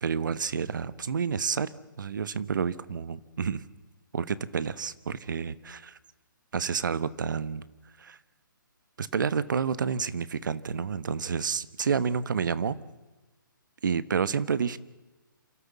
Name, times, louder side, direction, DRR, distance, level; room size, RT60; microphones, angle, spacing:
voice 1, 0.0-1.7 2.0-3.6 4.1-6.0 6.5-7.6 8.0-8.2 9.0-12.8 13.8-14.8, right 6 dB, 65° right, 17 dB, 1.1 m, -29 dB
28.0 x 13.0 x 7.3 m, 1.1 s
figure-of-eight pair, 140°, 11 cm